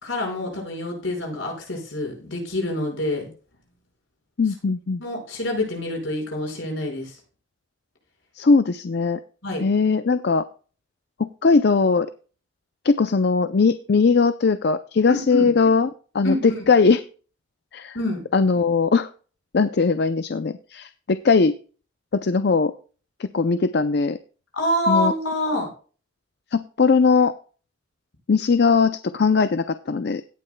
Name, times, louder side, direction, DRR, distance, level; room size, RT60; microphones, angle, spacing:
voice 1, 0.0-3.3 5.0-7.2 9.4-9.6 15.1-15.5 16.2-16.6 17.9-18.2 24.5-25.7, left 1 dB, 75° left, 1 dB, 5.1 m, -26 dB
voice 2, 4.4-5.0 8.4-9.2 9.6-10.4 11.2-12.1 12.8-15.9 16.1-17.0 17.7-18.0 18.3-19.1 19.5-21.5 22.1-22.7 23.2-24.2 24.9-25.1 26.5-27.3 28.3-30.2, left 4 dB, 55° left, 11 dB, 0.5 m, -19 dB
17.0 x 8.9 x 2.2 m, 0.38 s
head